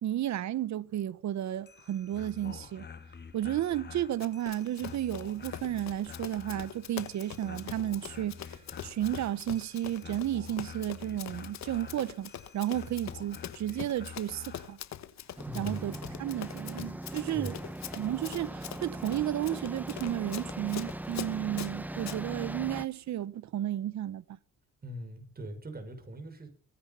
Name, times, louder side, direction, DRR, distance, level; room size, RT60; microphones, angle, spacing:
voice 1, 0.0-2.9 3.3-8.4 8.8-14.8 15.5-17.5 17.9-24.2, right 12 dB, 65° right, 1.0 m, -33 dB
sound 1, 1.5-14.8, left 6 dB, 35° left, 1.9 m, -48 dB
Run, 4.2-22.2, left 10 dB, 65° left, 1.3 m, -44 dB
sound 2, 15.4-22.9, right 1 dB, 5° right, 0.8 m, -40 dB
voice 2, 15.4-16.0 17.3-17.7 24.8-26.5, right 1 dB, 30° right, 6.0 m, -41 dB
24.0 x 10.5 x 5.6 m
cardioid pair, 90°, 30 cm